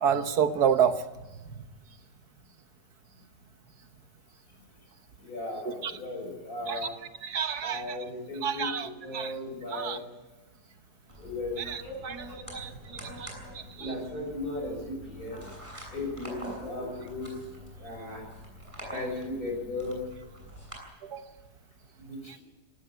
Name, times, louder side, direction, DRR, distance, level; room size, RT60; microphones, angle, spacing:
voice 1, 0.0-1.0 5.8-5.9 6.7-6.8 7.2-8.0 8.4-9.3 9.7-10.0 11.7-12.3 12.5-12.7 13.2-13.3 13.8-13.9 21.0-21.2, right 8 dB, 65° right, 9 dB, 1.7 m, -28 dB
voice 2, 5.2-6.9 7.6-10.0 11.2-11.6 12.2-12.4 13.0-13.1 13.6-15.5 15.9-17.3 17.8-18.3 18.9-20.0 22.0-22.4, left 2 dB, 55° left, 1 dB, 6.8 m, -36 dB
sound 1, 11.1-20.8, equal, 15° right, 7.0 m, -44 dB
18.0 x 18.0 x 8.2 m, 1.2 s
omnidirectional pair, 1.8 m